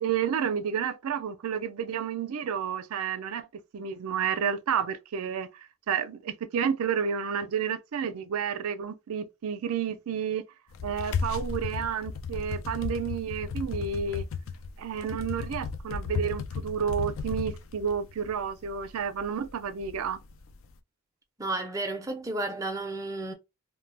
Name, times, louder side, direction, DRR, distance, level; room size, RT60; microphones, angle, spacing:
voice 1, 0.0-3.5 3.7-10.4 10.8-14.3 14.8-20.2, right 7 dB, 80° right, 0.4 m, -30 dB
sound 1, 10.7-20.7, left 5 dB, 65° left, 0.3 m, -35 dB
voice 2, 21.4-23.3, right 2 dB, 15° right, 0.4 m, -32 dB
2.2 x 2.0 x 3.2 m
head